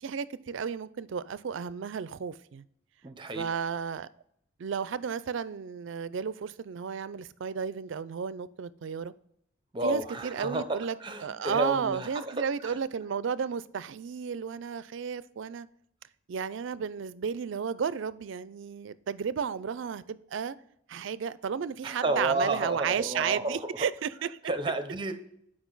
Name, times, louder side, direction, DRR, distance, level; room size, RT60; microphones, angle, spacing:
voice 1, 0.0-2.7 3.3-4.1 4.6-9.1 9.8-11.0 11.2-15.7 16.3-20.6 20.9-24.3, right 6 dB, 65° right, 0.4 m, -33 dB
voice 2, 3.0-3.4 9.7-12.8 21.8-23.9 24.5-25.1, right 2 dB, 25° right, 0.6 m, -31 dB
8.2 x 5.0 x 3.9 m
head